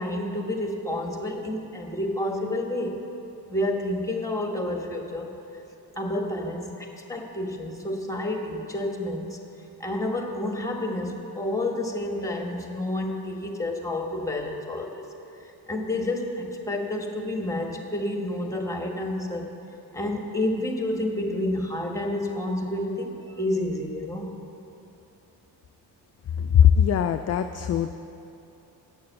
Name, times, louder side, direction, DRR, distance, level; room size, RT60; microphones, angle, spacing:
voice 1, 0.0-3.0 3.5-5.4 6.0-9.4 9.8-15.0 15.4-19.5 19.9-24.4, left 1 dB, 5° left, 2 dB, 1.5 m, -29 dB
voice 2, 26.4-27.9, left 9 dB, 35° left, 8 dB, 0.4 m, -20 dB
9.4 x 6.6 x 6.9 m, 2.9 s
hypercardioid pair, 50°, 48 cm